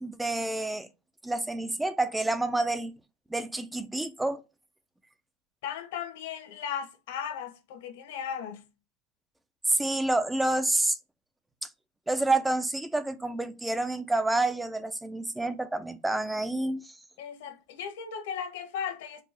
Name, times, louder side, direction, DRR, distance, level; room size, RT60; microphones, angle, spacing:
voice 1, 0.0-0.9 1.2-2.9 3.3-4.4 9.7-11.0 12.1-16.9, right 2 dB, 5° right, 0.3 m, -28 dB
voice 2, 5.6-8.7 17.2-19.2, left 8 dB, 65° left, 1.1 m, -36 dB
4.6 x 2.4 x 4.1 m
supercardioid pair, 170°, 0 cm